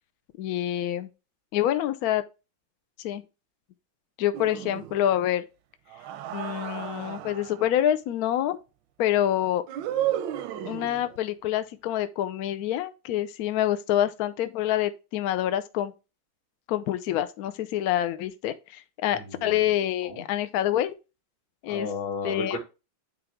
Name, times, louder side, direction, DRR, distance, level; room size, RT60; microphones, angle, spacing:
voice 1, 0.4-1.1 1.5-2.2 3.0-3.2 4.2-5.4 6.3-8.6 9.0-9.6 10.6-15.9 16.7-20.9 21.6-21.9 22.2-22.6, left 11 dB, 85° left, 0.8 m, -26 dB
sound 1, 4.3-5.2 5.9-7.7 9.7-11.2, right 12 dB, 75° right, 1.1 m, -33 dB
voice 2, 19.1-19.7 20.0-20.2 21.7-22.6, left 3 dB, 60° left, 2.4 m, -34 dB
8.7 x 3.4 x 3.4 m
omnidirectional pair, 2.3 m